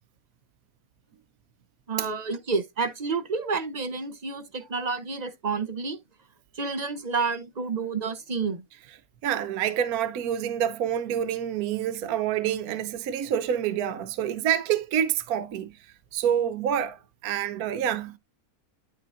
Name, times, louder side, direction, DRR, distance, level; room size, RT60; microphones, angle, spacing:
voice 1, 1.9-6.0 6.5-8.6, right 4 dB, 45° right, 0.5 m, -29 dB
voice 2, 9.2-15.7 16.1-18.2, right 9 dB, 75° right, 1.2 m, -27 dB
12.0 x 4.2 x 2.5 m
omnidirectional pair, 1.6 m